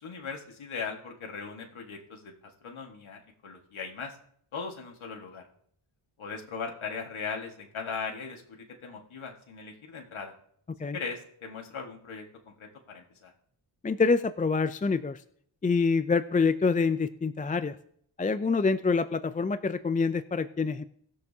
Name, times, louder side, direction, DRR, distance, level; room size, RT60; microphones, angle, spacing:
voice 1, 0.0-2.3 2.6-4.2 4.5-5.4 6.2-8.4 8.8-10.3 10.9-12.3 12.6-13.3, left 5 dB, 70° left, 1 dB, 1.7 m, -38 dB
voice 2, 13.8-15.2 15.6-17.8 18.2-20.8, left 4 dB, 20° left, 13 dB, 0.4 m, -26 dB
19.5 x 7.0 x 2.8 m, 0.66 s
cardioid pair, 60°, 50 cm